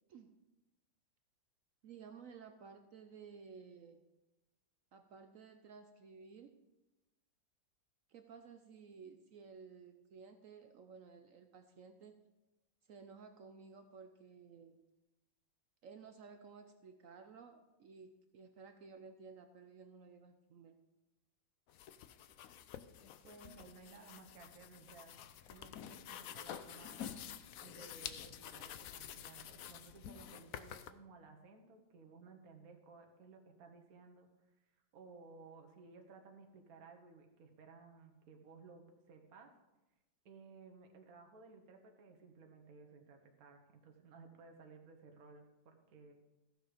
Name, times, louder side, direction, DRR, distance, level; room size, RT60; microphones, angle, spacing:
voice 1, 1.8-4.0 4.9-6.6 8.1-12.2 12.9-14.9 15.8-20.8, right 5 dB, 75° right, 7 dB, 0.7 m, -55 dB
sound 1, 21.7-30.9, left 10 dB, 80° left, 0.7 m, -49 dB
voice 2, 23.2-27.2 27.6-34.3 34.9-39.5 40.2-46.1, right 4 dB, 50° right, 4 dB, 1.5 m, -58 dB
14.5 x 6.5 x 5.0 m, 1.0 s
omnidirectional pair, 2.1 m